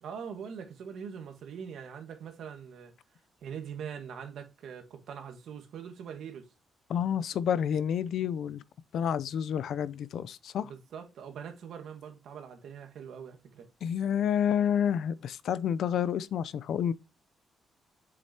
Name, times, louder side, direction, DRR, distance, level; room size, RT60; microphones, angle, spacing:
voice 1, 0.0-2.9 3.4-6.5 10.6-13.7, right 7 dB, 65° right, 1.6 m, -42 dB
voice 2, 6.9-8.6 8.9-10.7 13.8-16.9, left 8 dB, 65° left, 0.5 m, -29 dB
7.7 x 6.3 x 2.8 m
cardioid pair, 155°, 0 cm